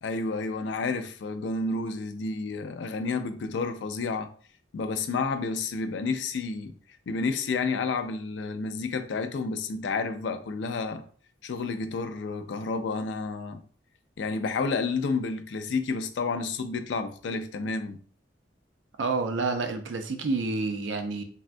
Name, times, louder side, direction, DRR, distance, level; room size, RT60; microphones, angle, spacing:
voice 1, 0.0-4.3 4.7-6.7 7.1-11.0 11.4-13.6 14.2-18.0, left 4 dB, 70° left, 0.4 m, -30 dB
voice 2, 19.0-21.2, right 3 dB, 80° right, 0.4 m, -29 dB
3.4 x 2.2 x 2.5 m
head